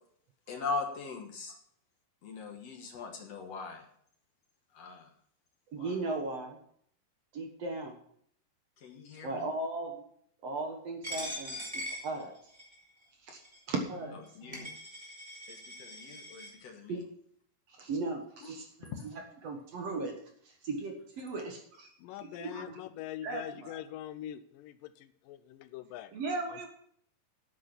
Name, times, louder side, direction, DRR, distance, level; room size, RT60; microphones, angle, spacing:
voice 1, 0.5-1.5 2.2-3.8 4.7-5.1 5.8-6.0 8.8-9.4 14.4-14.7 15.5-17.0 18.4-18.5, left 4 dB, 60° left, 2.0 m, -40 dB
voice 2, 5.7-6.6 7.3-8.0 9.2-10.0 10.4-12.3 13.2-13.4 13.7-14.7 16.9-17.0 17.8-20.2 20.5-21.9 22.2-22.8 23.2-23.7 26.1-26.7, right 3 dB, 55° right, 2.0 m, -37 dB
Coin (dropping), 11.0-12.8 13.4-13.6 14.2-14.3 14.5-16.5, equal, 10° right, 2.7 m, -41 dB
voice 3, 22.0-26.1 26.5-26.7, left 12 dB, 80° left, 2.2 m, -43 dB
9.2 x 8.6 x 6.0 m
omnidirectional pair, 4.0 m